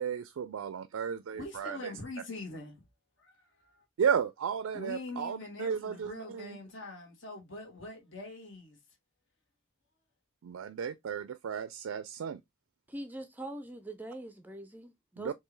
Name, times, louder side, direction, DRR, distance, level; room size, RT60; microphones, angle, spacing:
voice 1, 0.0-1.9 4.0-6.6 10.4-12.4 15.2-15.3, right 7 dB, 85° right, 0.4 m, -34 dB
voice 2, 1.3-2.8 3.2-3.8 4.7-8.8, left 2 dB, 65° left, 1.7 m, -43 dB
voice 3, 12.9-15.3, right 1 dB, 10° right, 0.4 m, -43 dB
4.5 x 2.7 x 3.1 m
head